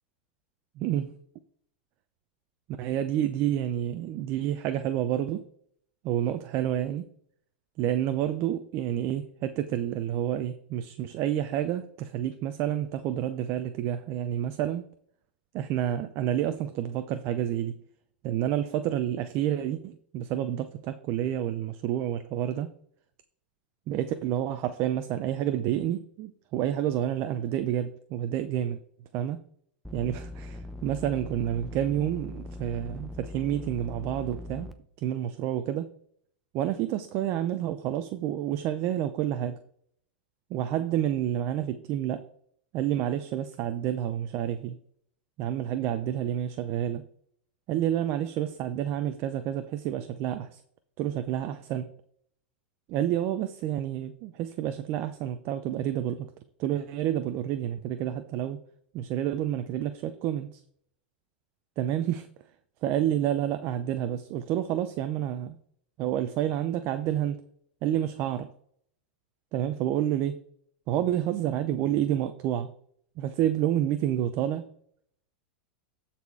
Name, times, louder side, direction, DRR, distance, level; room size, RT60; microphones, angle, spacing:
voice 1, 0.8-1.1 2.8-5.4 6.0-7.1 7.8-14.8 15.5-17.8 18.2-22.7 23.9-28.8 29.1-29.4 29.9-34.7 35.0-35.9 36.5-39.6 40.5-42.3 42.7-44.8 45.4-47.0 47.7-50.6 51.0-51.9 52.9-56.3 56.6-58.6 58.9-60.6 61.8-62.3 62.8-65.6 66.0-67.4 67.8-68.5 69.5-70.4 70.9-72.7 73.2-74.7, right 11 dB, 45° right, 0.6 m, -29 dB
sound 1, 29.8-34.7, left 2 dB, ahead, 0.8 m, -41 dB
12.5 x 4.3 x 4.7 m
hypercardioid pair, 120°, 6 cm